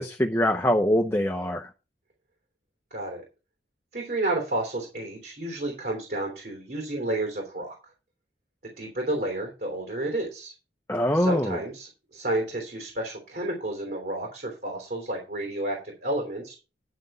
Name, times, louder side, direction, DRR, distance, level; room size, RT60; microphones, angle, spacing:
voice 1, 0.0-1.7 10.9-11.6, equal, 15° left, 0.8 m, -23 dB
voice 2, 2.9-3.2 3.9-7.7 8.6-10.5 11.1-16.6, right 1 dB, 55° right, 3.3 m, -31 dB
10.5 x 5.8 x 5.6 m
head